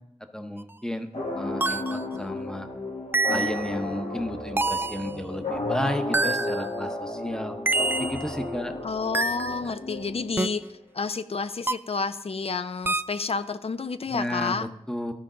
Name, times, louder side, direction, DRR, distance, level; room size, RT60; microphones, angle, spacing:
voice 1, 0.3-1.1 1.4-2.7 3.3-7.6 8.0-8.7 14.1-15.1, equal, 5° left, 7 dB, 0.7 m, -33 dB
sound 1, 0.6-0.7 1.6-2.0 3.1-3.7 4.6-5.1 6.1-6.7 7.7-8.3 9.1-9.6 10.4-10.5 11.7-12.0 12.9-13.2, right 3 dB, 20° right, 0.3 m, -26 dB
sound 2, 1.1-10.6, left 2 dB, 85° left, 1.7 m, -33 dB
voice 2, 8.8-14.7, left 4 dB, 60° left, 12 dB, 0.5 m, -30 dB
13.0 x 5.2 x 3.8 m, 0.78 s
wide cardioid pair, 60°, 11 cm